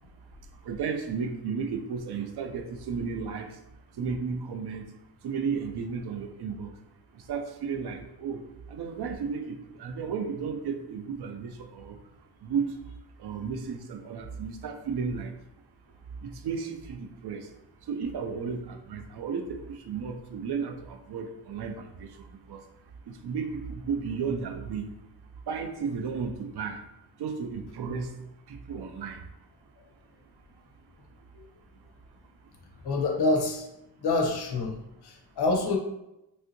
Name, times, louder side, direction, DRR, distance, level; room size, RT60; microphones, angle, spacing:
voice 1, 0.6-3.6 4.0-4.9 5.2-6.7 7.3-8.4 8.7-12.0 12.4-12.7 13.2-15.3 16.2-17.5 17.9-22.1 22.5-22.6 23.1-24.9 25.5-26.8 27.2-28.1 28.5-29.2, right 5 dB, 70° right, 5 dB, 0.5 m, -33 dB
voice 2, 32.8-33.7 34.0-34.8 35.0-35.8, left 2 dB, 70° left, 2 dB, 0.7 m, -27 dB
3.3 x 2.7 x 2.6 m, 0.89 s
wide cardioid pair, 135°, 41 cm